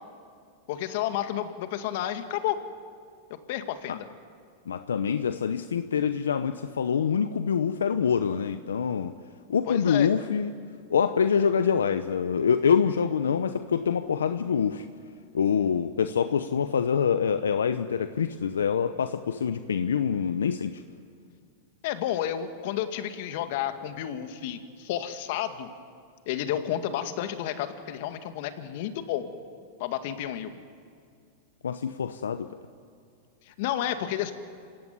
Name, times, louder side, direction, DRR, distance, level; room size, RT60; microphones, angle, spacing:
voice 1, 0.7-2.6 3.3-4.1 9.7-10.1 21.8-25.7 26.3-29.3 29.8-30.5 33.5-34.3, left 11 dB, 60° left, 8 dB, 2.0 m, -31 dB
voice 2, 4.7-9.1 9.5-10.5 10.9-14.9 15.3-20.7 31.6-32.5, left 7 dB, 90° left, 10 dB, 0.8 m, -25 dB
27.5 x 17.0 x 9.6 m, 2.2 s
hypercardioid pair, 110°, 0 cm